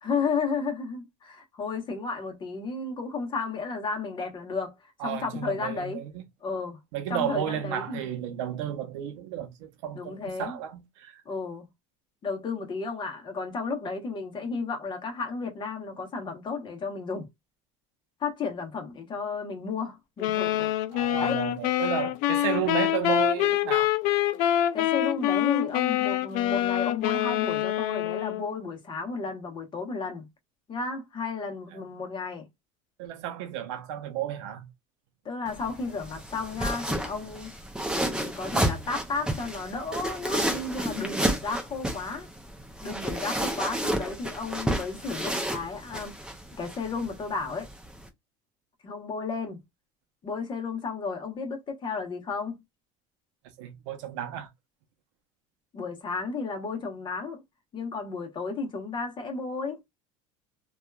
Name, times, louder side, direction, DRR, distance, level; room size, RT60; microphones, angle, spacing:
voice 1, 0.0-6.0 6.4-6.8 7.1-8.2 9.9-10.6 11.3-11.7 12.2-17.3 18.2-20.7 21.2-21.4 22.0-22.1 24.5-30.3 30.7-32.5 35.2-37.5 37.9-42.3 42.8-46.1 46.6-47.7 48.8-49.6 50.2-52.6 55.7-57.4 57.7-59.8, left 4 dB, 30° left, 1.0 m, -33 dB
voice 2, 5.0-6.2 6.9-11.2 20.9-23.9 31.7-31.8 33.0-34.7 53.6-54.5, right 10 dB, 90° right, 0.6 m, -33 dB
sound 1, 20.2-28.6, left 13 dB, 65° left, 0.4 m, -26 dB
sound 2, 35.5-48.1, right 1 dB, 5° right, 0.6 m, -31 dB
2.7 x 2.4 x 2.3 m
supercardioid pair, 125°, 15 cm